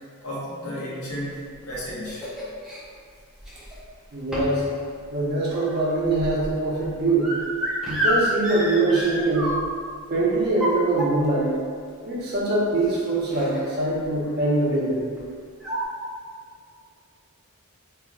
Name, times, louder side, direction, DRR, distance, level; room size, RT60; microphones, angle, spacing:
voice 1, 0.2-2.2, equal, 90° left, -7 dB, 0.8 m, -33 dB
sound 1, 1.3-2.8 3.4-3.9 4.3-4.7 5.0-9.9 10.4-11.5 12.3-12.4 12.7-12.9 13.3-13.8 14.0-14.3 15.2-15.3 15.6-15.9, equal, ahead, 0.3 m, -30 dB
voice 2, 4.1-4.6 5.1-7.3 7.9-9.6 10.1-11.5 12.1-15.1, right 2 dB, 45° right, -5 dB, 0.6 m, -23 dB
2.4 x 2.0 x 3.7 m, 2.1 s
head